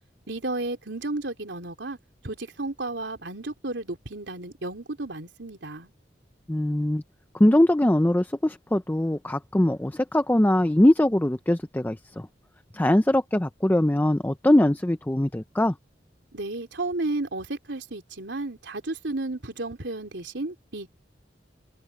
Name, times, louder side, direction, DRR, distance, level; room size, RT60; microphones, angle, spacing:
voice 1, 0.3-2.0 2.2-5.9 16.3-20.9, right 2 dB, 80° right, 3.4 m, -33 dB
voice 2, 6.5-7.0 7.3-12.3 12.7-15.7, left 1 dB, 10° left, 0.5 m, -22 dB
head